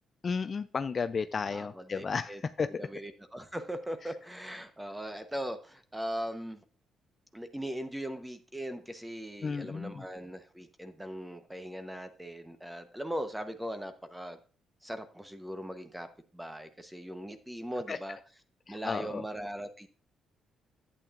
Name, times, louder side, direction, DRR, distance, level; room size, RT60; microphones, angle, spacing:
voice 1, 0.2-2.8 9.4-10.0 17.9-18.0 18.7-19.2, left 5 dB, 40° left, 12 dB, 0.3 m, -33 dB
voice 2, 1.5-2.4 2.8-6.6 7.3-14.4 14.8-16.1 16.3-18.2 18.7-19.9, equal, 5° right, 9 dB, 0.9 m, -39 dB
10.5 x 8.7 x 2.5 m, 0.37 s
cardioid pair, 90°, 0 cm